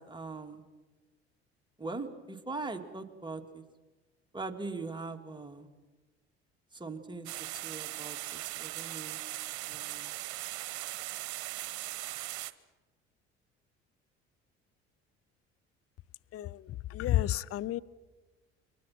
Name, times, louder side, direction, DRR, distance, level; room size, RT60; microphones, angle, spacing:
voice 1, 0.1-0.6 1.8-3.6 4.3-5.7 6.7-7.3 7.6-9.2 9.7-10.1, right 3 dB, 15° right, 2.9 m, -41 dB
sound 1, 7.3-12.5, right 17 dB, 65° right, 1.1 m, -39 dB
voice 2, 16.3-17.8, left 14 dB, 45° left, 0.7 m, -31 dB
29.5 x 24.0 x 6.1 m
hypercardioid pair, 60°, 32 cm